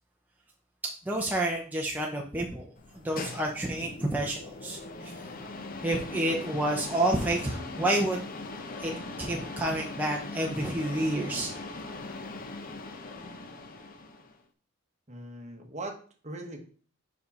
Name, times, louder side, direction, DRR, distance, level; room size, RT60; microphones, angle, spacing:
voice 1, 1.0-2.7 2.9-5.1 5.8-8.2 8.8-8.9 9.2-11.5, right 1 dB, 10° right, -1 dB, 0.7 m, -29 dB
sound 1, 2.8-14.4, left 3 dB, 45° left, 0.7 m, -40 dB
Guitar, 6.1-10.4, left 2 dB, 10° left, 2.3 m, -51 dB
voice 2, 15.1-16.6, right 1 dB, 35° right, 4 dB, 1.1 m, -40 dB
5.4 x 5.0 x 4.2 m, 0.43 s
head